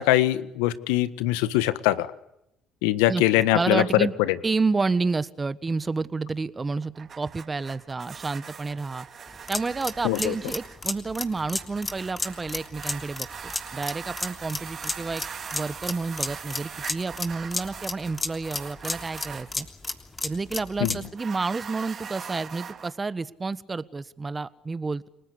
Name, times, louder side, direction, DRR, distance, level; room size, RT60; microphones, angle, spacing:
voice 1, 0.0-2.1 2.8-4.4 10.0-10.3 20.8-21.0, left 15 dB, 85° left, 14 dB, 1.5 m, -22 dB
voice 2, 3.5-4.1 4.4-9.1 9.5-15.2 15.5-19.7 20.2-25.1, right 4 dB, 25° right, 16 dB, 1.5 m, -30 dB
sound 1, 6.8-19.5 21.0-22.9, right 7 dB, 50° right, 3.2 m, -41 dB
sound 2, 9.3-21.1, left 3 dB, 25° left, 3.3 m, -33 dB
30.0 x 20.0 x 8.3 m, 0.82 s
supercardioid pair, 70°, 0 cm